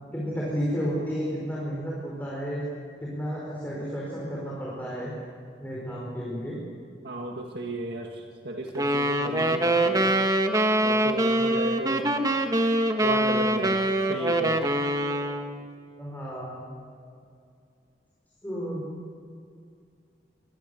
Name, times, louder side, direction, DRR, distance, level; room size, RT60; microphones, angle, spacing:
voice 1, 0.1-2.6 3.0-5.1 5.6-6.6 16.0-16.6 18.4-18.8, equal, 10° left, -5 dB, 5.0 m, -32 dB
voice 2, 7.0-10.2 10.8-12.1 13.0-13.8 14.1-14.6, right 1 dB, 65° right, 0 dB, 2.0 m, -33 dB
sound 1, 8.7-15.6, right 1 dB, 20° right, 1.5 m, -24 dB
27.0 x 20.5 x 7.0 m, 2.4 s
head